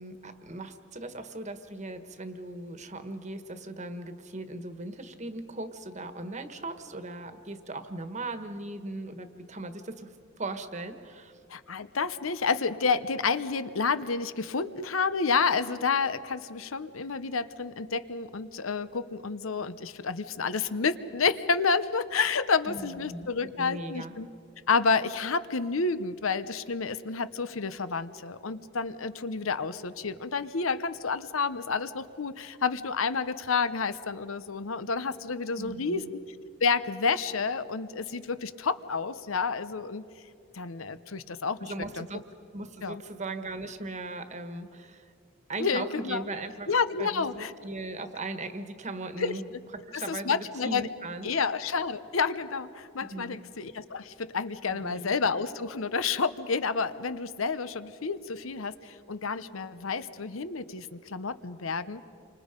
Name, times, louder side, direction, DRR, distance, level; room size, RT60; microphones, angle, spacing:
voice 1, 0.0-10.1 10.4-11.3 22.7-24.1 35.6-36.1 41.6-42.2 42.5-45.1 45.5-46.7 47.0-49.4 49.7-51.3 53.0-53.4 54.7-55.1, right 2 dB, 35° right, 9 dB, 1.5 m, -38 dB
voice 2, 11.5-24.3 24.7-36.0 36.6-40.0 40.5-42.1 42.8-43.0 45.6-46.2 46.7-47.5 49.2-49.3 49.9-50.9 51.2-62.0, left 5 dB, 85° left, 13 dB, 0.9 m, -29 dB
29.5 x 25.5 x 5.3 m, 2.5 s
head